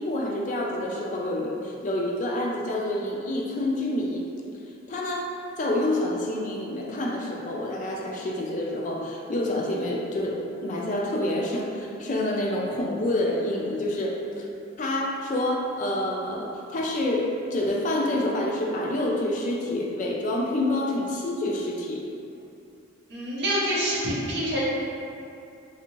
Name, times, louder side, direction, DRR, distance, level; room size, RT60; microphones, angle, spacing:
voice 1, 0.0-4.2 4.9-5.3 5.6-14.5 14.8-22.0, left 1 dB, 35° left, -1 dB, 0.3 m, -27 dB
voice 2, 23.1-24.6, equal, 55° right, -6 dB, 0.7 m, -26 dB
3.3 x 2.7 x 2.9 m, 2.6 s
head